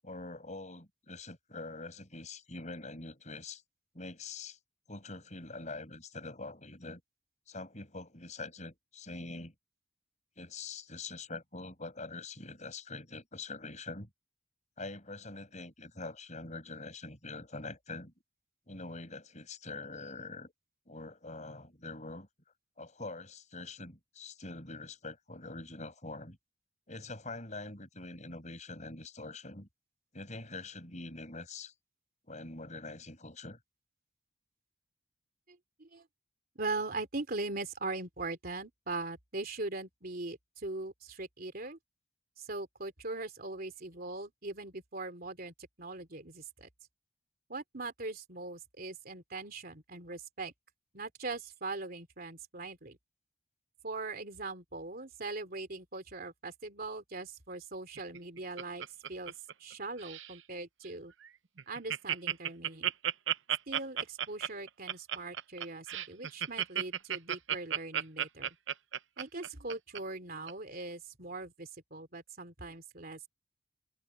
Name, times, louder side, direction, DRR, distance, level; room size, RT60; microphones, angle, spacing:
voice 1, 0.0-3.6 3.9-4.6 4.9-7.0 7.5-9.5 10.4-14.1 14.8-18.1 18.7-20.5 20.9-22.3 22.8-26.4 26.9-29.7 30.1-31.7 32.3-33.6, left 3 dB, 35° left, 7.9 m, -44 dB
voice 2, 35.5-36.0 36.5-41.8 42.4-46.7 47.5-50.5 50.9-53.0 53.8-58.8 59.1-59.3 59.6-61.1 61.7-62.9 63.7-68.6 69.2-73.3, right 3 dB, 50° right, 3.3 m, -41 dB
Laughter, 58.0-59.7 60.0-60.4 60.8-60.9 61.2-61.3 61.6-70.0 70.5-70.6, right 10 dB, 70° right, 0.7 m, -33 dB
head